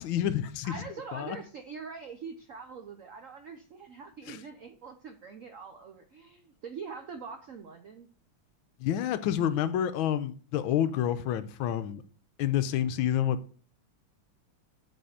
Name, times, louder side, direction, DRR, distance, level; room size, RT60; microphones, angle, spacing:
voice 1, 0.0-0.8 1.1-1.4 4.3-4.4 8.8-12.0 12.4-13.6, left 10 dB, 80° left, 1.4 m, -29 dB
voice 2, 0.6-8.1, right 5 dB, 75° right, 0.7 m, -43 dB
7.9 x 4.3 x 6.5 m
omnidirectional pair, 2.3 m